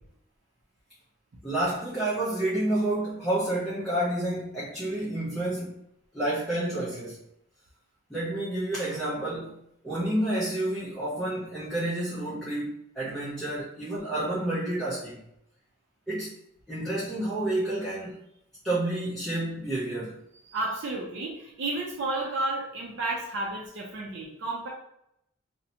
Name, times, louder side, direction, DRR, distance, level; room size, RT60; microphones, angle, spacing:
voice 1, 1.4-5.8 6.1-7.2 8.1-9.6 9.8-15.2 16.1-16.4 16.7-18.2 18.6-20.2, right 1 dB, ahead, -10 dB, 0.5 m, -29 dB
voice 2, 20.5-24.7, right 2 dB, 60° right, -4 dB, 0.5 m, -32 dB
2.7 x 2.1 x 2.7 m, 0.77 s
head